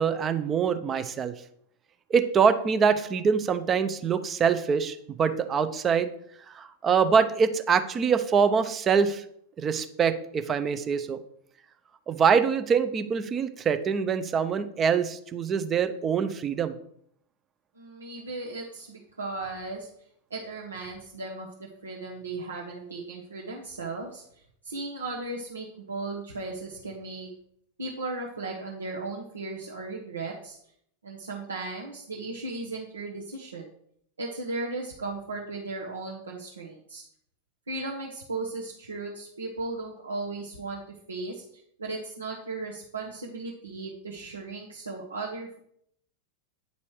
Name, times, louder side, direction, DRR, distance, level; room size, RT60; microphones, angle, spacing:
voice 1, 0.0-1.3 2.1-6.1 6.5-9.2 9.6-11.2 12.1-16.8, right 6 dB, 25° right, 10 dB, 0.6 m, -24 dB
voice 2, 17.7-19.9 20.3-27.3 27.8-30.6 31.0-33.7 34.2-37.0 37.7-45.6, right 3 dB, 75° right, -2 dB, 1.0 m, -36 dB
9.2 x 4.2 x 4.7 m, 0.69 s
figure-of-eight pair, 90°, 0 cm